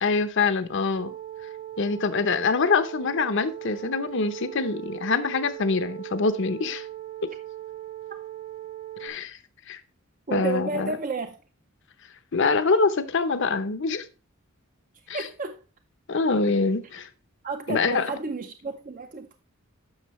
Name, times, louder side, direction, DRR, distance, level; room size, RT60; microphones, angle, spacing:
voice 1, 0.0-1.1 1.8-6.9 7.2-7.3 9.0-9.4 9.7-9.8 10.3-10.9 12.3-14.1 15.1-15.2 16.1-17.1 17.7-18.1, left 4 dB, 60° left, 0.8 m, -25 dB
sound 1, 0.9-9.1, right 13 dB, 90° left, 2.0 m, -39 dB
voice 2, 10.3-11.4 15.1-15.5 17.4-19.4, right 3 dB, 40° right, 0.6 m, -32 dB
9.7 x 6.5 x 3.1 m
head